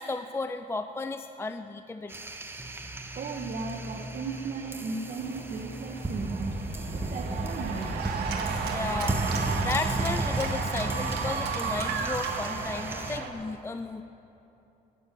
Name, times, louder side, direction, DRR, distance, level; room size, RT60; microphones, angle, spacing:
voice 1, 0.0-2.1 8.7-9.2 9.6-14.0, left 3 dB, 15° left, 9 dB, 0.5 m, -34 dB
sound 1, 2.1-13.2, right 2 dB, 15° right, 1.0 m, -34 dB
voice 2, 3.1-6.5 6.9-7.9 8.4-8.6, right 4 dB, 50° right, 1 dB, 1.2 m, -36 dB
Cheering / Applause, 3.6-13.3, right 5 dB, 75° right, 1.8 m, -35 dB
14.5 x 9.2 x 8.0 m, 2.9 s
cardioid pair, 95°, 17 cm